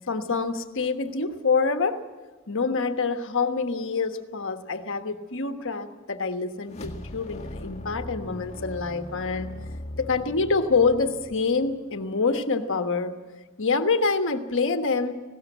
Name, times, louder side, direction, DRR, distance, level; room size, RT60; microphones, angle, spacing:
voice 1, 0.1-2.0 2.5-9.6 10.0-13.1 13.6-15.1, left 4 dB, 60° left, 7 dB, 1.3 m, -26 dB
sound 1, 6.6-12.0, left 1 dB, 30° left, 1.7 m, -40 dB
19.5 x 17.0 x 8.0 m, 1.3 s
head